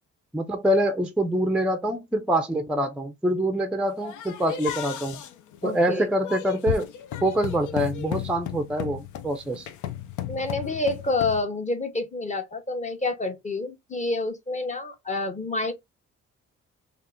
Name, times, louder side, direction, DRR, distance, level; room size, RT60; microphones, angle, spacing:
voice 1, 0.3-5.2 5.6-6.9 7.2-9.7, right 1 dB, 5° right, 0.4 m, -25 dB
sound 1, 4.0-11.4, left 11 dB, 75° left, 0.5 m, -34 dB
voice 2, 5.6-6.0 10.3-15.7, left 2 dB, 25° left, 0.9 m, -28 dB
2.8 x 2.4 x 3.5 m
cardioid pair, 90°, 30 cm